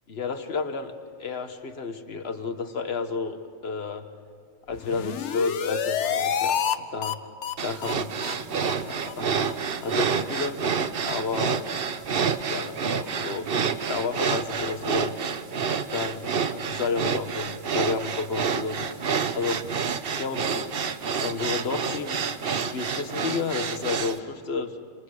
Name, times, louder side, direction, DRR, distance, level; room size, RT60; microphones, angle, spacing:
voice 1, 0.1-0.9 1.2-3.4 3.6-4.1 4.7-7.2 7.6-8.1 8.5-9.5 9.8-10.6 11.1-11.7 12.5-13.5 13.9-15.2 15.9-18.9 19.3-19.7 20.2-22.2 22.5-24.8, left 4 dB, 60° left, 7 dB, 1.6 m, -31 dB
sound 1, 4.7-6.8 7.0-7.1 7.4-7.5 7.8-7.9 8.2-8.3 8.6-8.7 9.0-9.1 9.4-9.5 9.8-9.9, left 8 dB, 75° left, 1.2 m, -28 dB
sound 2, 7.6-24.2, right 6 dB, 55° right, 1.0 m, -28 dB
29.0 x 27.0 x 6.6 m, 2.2 s
omnidirectional pair, 1.2 m